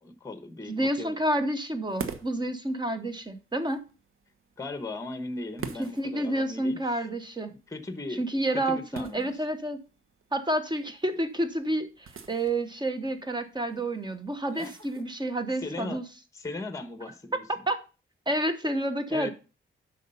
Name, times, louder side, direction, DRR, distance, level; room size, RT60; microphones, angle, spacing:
voice 1, 0.0-1.2 4.6-7.0 7.5-9.4 14.5-15.1 15.6-16.0 16.3-17.4 19.1-19.3, left 2 dB, 15° left, 1.0 m, -38 dB
voice 2, 0.7-3.8 5.8-7.5 8.2-9.8 10.3-16.0 17.7-17.8 18.3-19.3, right 1 dB, 20° right, 1.0 m, -29 dB
sound 1, 1.9-15.4, right 6 dB, 80° right, 1.1 m, -46 dB
8.2 x 5.5 x 5.5 m
wide cardioid pair, 120°, 21 cm